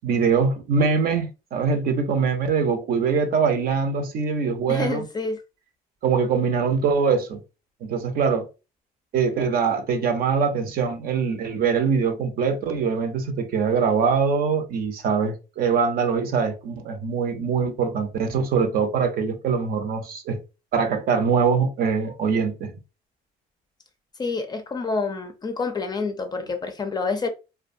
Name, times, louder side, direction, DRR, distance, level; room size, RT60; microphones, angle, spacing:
voice 1, 0.0-5.0 6.0-7.4 7.8-8.5 9.1-20.4 20.7-22.7, right 5 dB, 60° right, 0.6 m, -23 dB
voice 2, 4.7-5.4 24.2-27.3, left 4 dB, 25° left, 0.4 m, -28 dB
2.5 x 2.2 x 2.5 m
cardioid pair, 110°, 17 cm